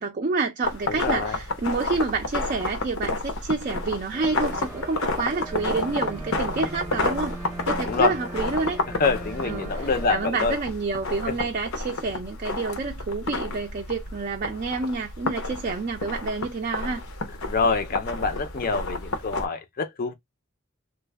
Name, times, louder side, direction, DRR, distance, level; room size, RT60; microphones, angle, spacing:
voice 1, 0.0-7.4 7.7-8.8 9.4-17.0, right 4 dB, 40° right, 0.4 m, -28 dB
sound 1, 0.6-19.5, left 2 dB, 85° left, 0.8 m, -31 dB
voice 2, 0.9-1.4 7.9-8.1 9.0-10.5 11.3-11.4 17.5-20.1, left 4 dB, 45° left, 0.5 m, -26 dB
sound 2, 4.1-10.1, right 2 dB, 10° right, 0.7 m, -39 dB
3.1 x 2.1 x 3.3 m
head